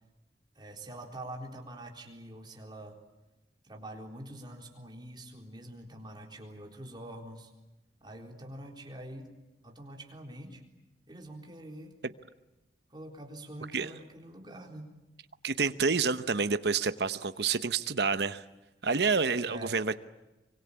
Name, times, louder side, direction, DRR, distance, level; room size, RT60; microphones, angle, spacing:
voice 1, 0.6-3.0 3.6-7.5 8.0-9.3 9.6-10.6 11.1-12.0 12.9-14.9 19.5-19.8, right 1 dB, 25° right, 1 dB, 3.9 m, -45 dB
voice 2, 15.4-18.4 18.8-19.9, right 5 dB, 70° right, 11 dB, 1.0 m, -28 dB
25.0 x 24.5 x 8.6 m, 1.0 s
head